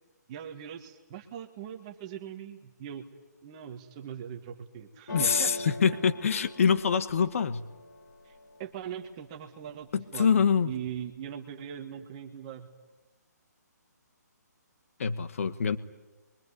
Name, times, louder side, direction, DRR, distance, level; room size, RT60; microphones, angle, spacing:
voice 1, 0.3-3.0 3.4-5.7 8.2-12.7, right 9 dB, 20° right, 3 dB, 1.4 m, -41 dB
sound 1, 5.1-8.9 9.4-10.0 10.3-11.1, left 1 dB, 85° left, 7.0 m, -41 dB
voice 2, 5.1-7.6 9.9-10.7 15.0-15.8, left 6 dB, 50° left, 13 dB, 1.3 m, -25 dB
26.5 x 23.0 x 9.7 m, 1.1 s
hypercardioid pair, 170°, 10 cm